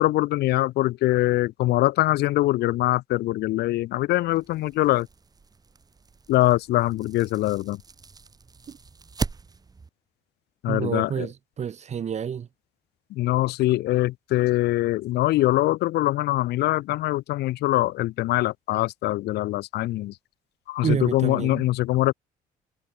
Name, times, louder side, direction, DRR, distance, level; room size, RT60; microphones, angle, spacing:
voice 1, 0.0-5.1 6.3-7.8 10.6-11.3 13.1-20.1 20.7-22.1, left 16 dB, 75° left, 1.1 m, -23 dB
sound 1, 4.3-9.9, right 4 dB, 20° right, 1.7 m, -39 dB
voice 2, 10.7-12.5 20.8-21.7, right 8 dB, 40° right, 2.1 m, -29 dB
cardioid pair, 110°, 17 cm